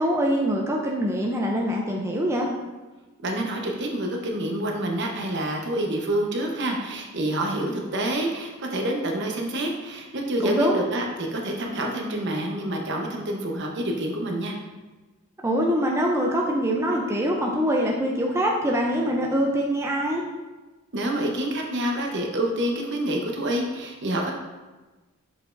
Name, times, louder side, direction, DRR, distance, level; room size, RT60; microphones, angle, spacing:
voice 1, 0.0-2.5 10.4-10.8 15.4-20.3, equal, 15° right, -1 dB, 0.5 m, -24 dB
voice 2, 3.2-14.6 20.9-24.3, right 1 dB, 55° right, 1 dB, 0.9 m, -27 dB
6.9 x 5.4 x 2.5 m, 1.2 s
head